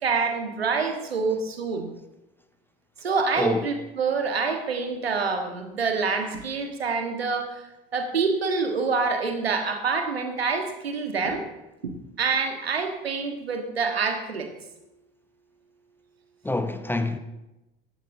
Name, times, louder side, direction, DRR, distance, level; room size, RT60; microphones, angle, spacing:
voice 1, 0.0-1.9 3.0-7.6 7.9-11.4 11.8-11.9 12.2-14.5, right 4 dB, 80° right, 1.4 m, -26 dB
voice 2, 3.4-3.7 16.4-17.2, left 2 dB, 5° left, 0.7 m, -26 dB
15.0 x 11.0 x 2.7 m
figure-of-eight pair, 70°, 30 cm